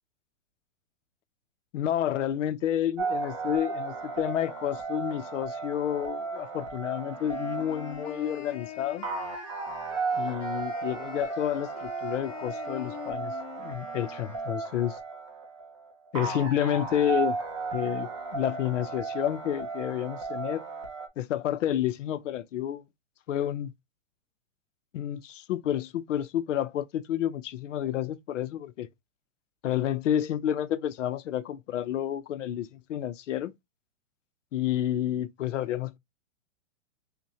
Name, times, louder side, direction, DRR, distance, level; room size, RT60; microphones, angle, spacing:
voice 1, 1.7-9.1 10.1-13.3 13.6-15.0 16.1-17.4 17.7-20.6 21.2-22.8 23.3-23.7 24.9-28.9 29.6-33.5 34.5-36.0, left 11 dB, 75° left, 0.6 m, -30 dB
sound 1, 3.0-21.1, right 4 dB, 25° right, 0.5 m, -35 dB
sound 2, 7.1-14.6, left 9 dB, 30° left, 0.9 m, -44 dB
5.7 x 2.2 x 2.7 m
supercardioid pair, 180°, 37 cm